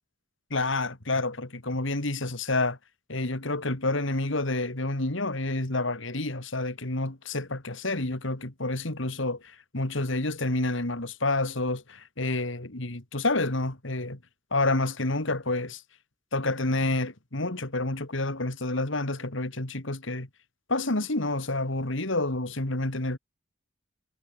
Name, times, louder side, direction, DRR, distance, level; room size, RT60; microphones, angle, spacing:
voice 1, 0.5-2.8 3.1-14.2 14.5-15.8 16.3-20.3 20.7-23.2, left 2 dB, 70° left, 2.6 m, -29 dB
head